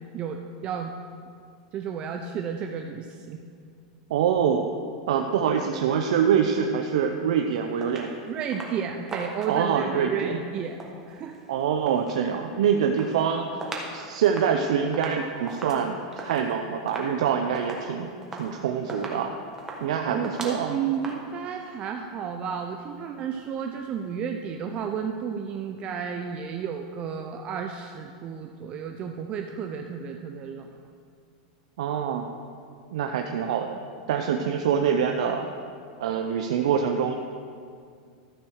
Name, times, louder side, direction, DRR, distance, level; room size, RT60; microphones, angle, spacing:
voice 1, 0.1-0.9 1.7-3.4 8.3-10.8 11.1-11.4 20.1-30.7, right 7 dB, 30° right, 4 dB, 0.5 m, -32 dB
voice 2, 4.1-4.6 5.1-8.1 9.5-10.4 11.5-13.5 13.9-19.3 19.8-20.7 31.8-32.3 32.9-33.8 34.1-35.5 36.0-37.2, right 7 dB, 80° right, 4 dB, 0.6 m, -25 dB
sound 1, 7.8-8.1 8.5-8.8 9.1-9.7 10.6-12.2 12.6-13.9 14.2-21.1, right 2 dB, 15° right, 1.3 m, -39 dB
13.0 x 4.5 x 6.4 m, 2.2 s
supercardioid pair, 145°, 3 cm